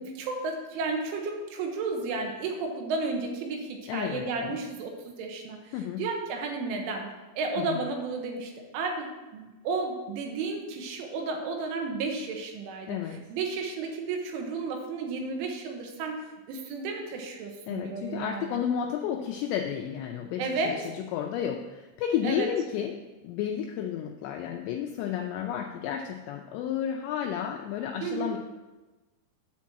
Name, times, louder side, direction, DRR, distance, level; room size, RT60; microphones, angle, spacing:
voice 1, 0.0-7.1 7.4-13.0 13.3-18.6 20.4-20.9 22.2-22.5 28.0-28.3, right 3 dB, 85° right, 2 dB, 3.6 m, -33 dB
voice 2, 3.9-4.6 5.7-6.0 7.6-7.8 12.9-13.2 17.7-28.4, left 9 dB, 85° left, 2 dB, 2.5 m, -32 dB
9.3 x 4.6 x 7.4 m, 1.2 s
omnidirectional pair, 5.6 m